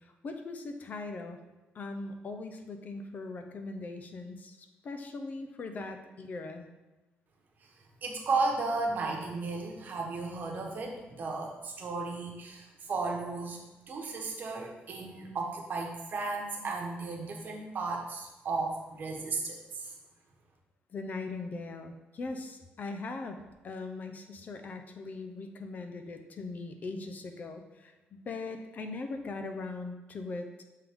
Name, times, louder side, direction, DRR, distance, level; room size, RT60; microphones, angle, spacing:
voice 1, 0.2-1.4 1.7-4.6 4.8-6.7 20.9-30.5, left 3 dB, 45° left, 6 dB, 0.6 m, -40 dB
voice 2, 8.0-13.6 13.9-19.9, right 3 dB, 50° right, 1 dB, 1.1 m, -34 dB
7.4 x 3.7 x 3.5 m, 1.1 s
cardioid pair, 130°, 4 cm